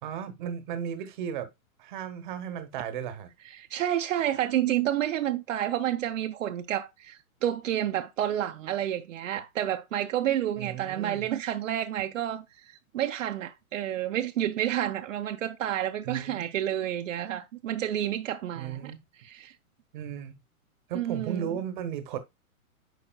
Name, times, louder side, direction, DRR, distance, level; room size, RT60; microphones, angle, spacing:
voice 1, 0.0-1.5 1.8-3.3 10.6-11.3 16.0-16.5 18.6-19.0 19.9-20.4 20.9-22.2, right 8 dB, 35° right, 1.0 m, -35 dB
voice 2, 3.5-18.9 19.2-19.5 20.9-21.5, right 11 dB, 65° right, 0.7 m, -30 dB
9.0 x 4.9 x 2.3 m
hypercardioid pair, 160°, 43 cm